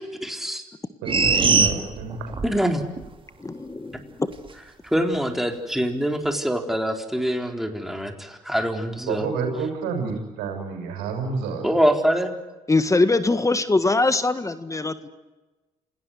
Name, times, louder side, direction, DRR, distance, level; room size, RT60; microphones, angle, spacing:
voice 1, 0.2-0.6 2.4-2.8 4.8-9.3 11.6-12.3, equal, ahead, 4 dB, 4.2 m, -24 dB
voice 2, 1.0-2.3 9.1-11.7, right 4 dB, 80° right, 5 dB, 6.5 m, -29 dB
sound 1, 1.1-2.6 3.0-3.1, right 4 dB, 35° right, 2.8 m, -20 dB
voice 3, 3.4-4.3 12.7-15.1, left 3 dB, 20° left, 11 dB, 1.7 m, -22 dB
27.5 x 18.0 x 9.9 m, 1.2 s
hypercardioid pair, 60°, 16 cm